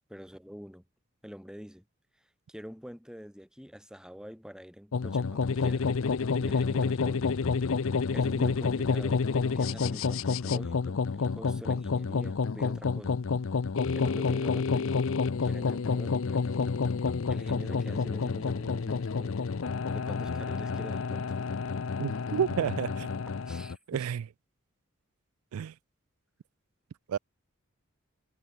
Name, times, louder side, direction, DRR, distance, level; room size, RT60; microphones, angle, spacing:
voice 1, 0.1-0.8 1.2-1.8 2.2-5.8 6.4-7.3 7.8-9.2 9.5-13.2 13.9-15.0 15.4-16.6 17.3-19.4 19.9-21.4 23.4-24.1, equal, 5° right, 2.9 m, -45 dB
sound 1, 4.9-23.8, left 5 dB, 65° left, 0.5 m, -29 dB
voice 2, 22.0-23.1 23.9-24.2 25.5-25.7 27.1-27.2, right 8 dB, 80° right, 0.3 m, -30 dB
head